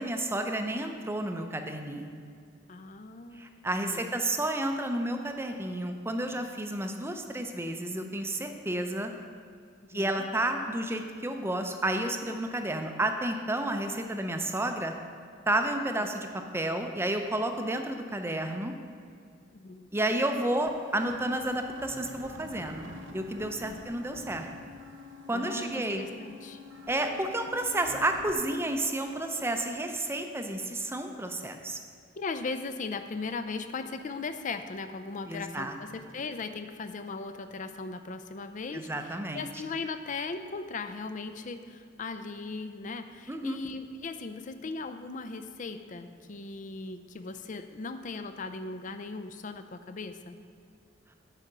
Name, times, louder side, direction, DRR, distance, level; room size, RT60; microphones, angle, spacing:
voice 1, 0.0-2.2 3.4-9.1 9.9-14.9 15.5-16.3 16.5-18.7 19.9-24.5 25.3-26.1 26.9-31.8 35.3-35.7 38.7-39.5 43.3-43.6, right 1 dB, 15° right, 5 dB, 0.5 m, -31 dB
voice 2, 2.7-4.1 9.9-10.3 16.0-16.1 19.5-19.9 23.7-24.3 25.3-26.6 32.2-50.4, left 4 dB, 40° left, 10 dB, 0.5 m, -38 dB
sound 1, 20.6-28.3, left 2 dB, 85° right, 0.8 m, -47 dB
8.4 x 4.9 x 6.7 m, 2.3 s
head